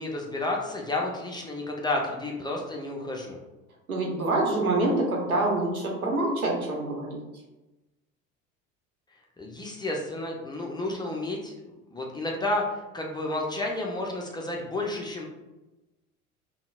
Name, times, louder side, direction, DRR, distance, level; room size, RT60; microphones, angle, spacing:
voice 1, 0.0-3.4 9.4-11.5 11.9-15.3, left 2 dB, 10° left, -1 dB, 0.5 m, -31 dB
voice 2, 3.9-7.2, right 2 dB, 90° right, -1 dB, 0.9 m, -26 dB
5.4 x 2.2 x 2.4 m, 1.0 s
figure-of-eight pair, 70°, 42 cm